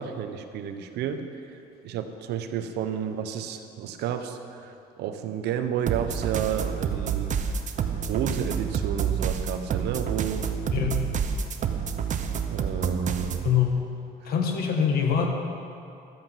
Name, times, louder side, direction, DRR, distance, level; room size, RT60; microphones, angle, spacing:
voice 1, 0.0-1.6 1.8-7.5 8.1-10.5 12.5-13.4, right 8 dB, 80° right, 8 dB, 1.0 m, -31 dB
sound 1, 5.9-13.5, right 7 dB, 45° right, 0.9 m, -28 dB
voice 2, 10.7-11.0 13.4-13.8 14.2-15.3, left 7 dB, 65° left, 2 dB, 1.9 m, -24 dB
12.5 x 8.0 x 7.4 m, 2.6 s
cardioid pair, 110°, 17 cm